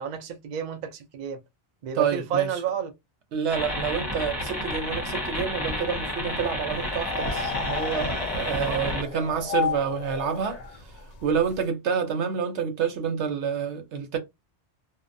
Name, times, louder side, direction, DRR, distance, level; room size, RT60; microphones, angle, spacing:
voice 1, 0.0-1.4 1.8-2.9 8.6-9.0, right 8 dB, 55° right, 0.5 m, -30 dB
voice 2, 1.9-2.5 3.3-10.8 11.2-14.2, right 6 dB, 90° right, 1.0 m, -28 dB
sound 1, 3.5-9.0, left 1 dB, 25° left, 0.8 m, -31 dB
sound 2, 6.7-11.6, left 6 dB, 50° left, 0.5 m, -33 dB
2.7 x 2.0 x 2.5 m
omnidirectional pair, 1.1 m